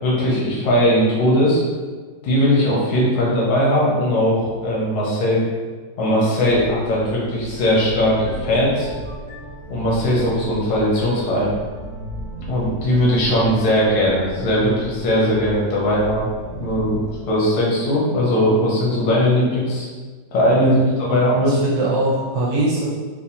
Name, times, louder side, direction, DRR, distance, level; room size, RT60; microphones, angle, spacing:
voice 1, 0.0-1.6 2.2-5.4 6.0-8.9 9.7-11.5 12.5-17.0 17.3-19.9 20.3-21.6, equal, 80° left, -5 dB, 1.6 m, -19 dB
sound 1, 6.4-17.1, right 2 dB, 45° right, 0.5 m, -34 dB
voice 2, 20.6-22.9, right 2 dB, 75° right, -5 dB, 1.2 m, -22 dB
4.2 x 2.3 x 2.7 m, 1.4 s
omnidirectional pair, 2.0 m